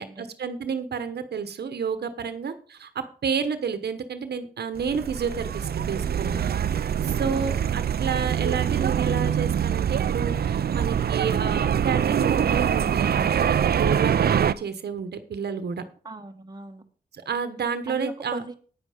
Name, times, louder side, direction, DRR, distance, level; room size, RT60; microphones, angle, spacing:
voice 1, 0.0-6.4 7.0-15.8 17.1-18.4, right 6 dB, 90° right, 10 dB, 1.1 m, -30 dB
sound 1, 4.8-14.5, right 8 dB, 70° right, 0.6 m, -24 dB
voice 2, 16.0-16.8 17.9-18.5, right 2 dB, 25° right, 4 dB, 1.6 m, -39 dB
9.7 x 9.3 x 5.0 m, 0.40 s
wide cardioid pair, 80°, 16 cm